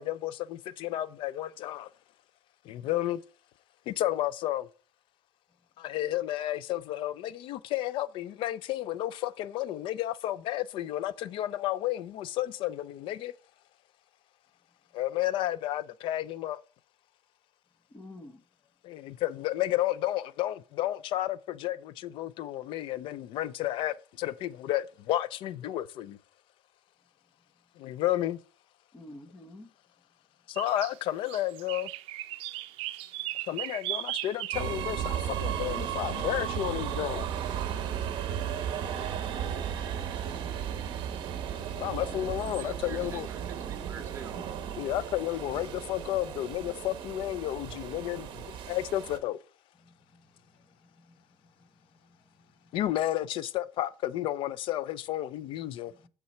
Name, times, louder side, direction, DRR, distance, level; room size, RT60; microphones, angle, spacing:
voice 1, 0.0-1.9 2.7-3.2 3.9-4.7 5.8-13.3 14.9-16.6 18.8-26.2 27.8-28.4 30.5-31.9 33.5-37.4 38.4-38.6 41.8-43.3 44.8-49.4 52.7-55.9, left 13 dB, 60° left, 0.4 m, -32 dB
voice 2, 17.9-18.4 28.9-29.7 49.9-50.0 51.0-51.5 52.4-52.7 56.0-56.1, left 1 dB, 15° left, 0.9 m, -49 dB
sound 1, 30.5-31.0 31.2-34.9 36.1-36.2 37.4-37.5 38.4-38.5 38.7-38.8 39.3-39.4 40.9-41.0 41.6-42.6, right 15 dB, 70° right, 0.5 m, -37 dB
sound 2, 34.5-49.2, right 9 dB, 50° right, 1.0 m, -35 dB
voice 3, 42.4-44.3, right 6 dB, 30° right, 1.0 m, -46 dB
6.8 x 5.6 x 4.3 m
cardioid pair, 165°, 10 cm